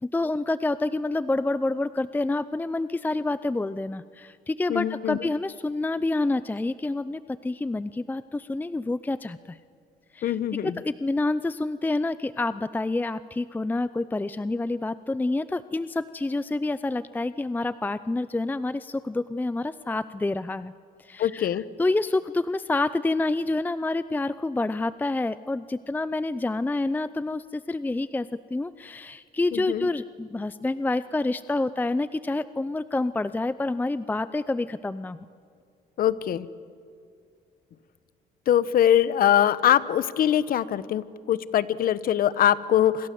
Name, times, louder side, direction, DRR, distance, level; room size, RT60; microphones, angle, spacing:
voice 1, 0.0-9.6 10.1-10.4 10.6-20.7 21.0-35.2, left 2 dB, 10° left, 15 dB, 0.6 m, -28 dB
voice 2, 4.7-5.3 10.2-10.8 21.2-21.6 29.5-29.9 36.0-36.5 38.5-43.1, left 11 dB, 60° left, 16 dB, 1.1 m, -23 dB
28.5 x 26.5 x 7.7 m, 2.4 s
cardioid pair, 110°, 17 cm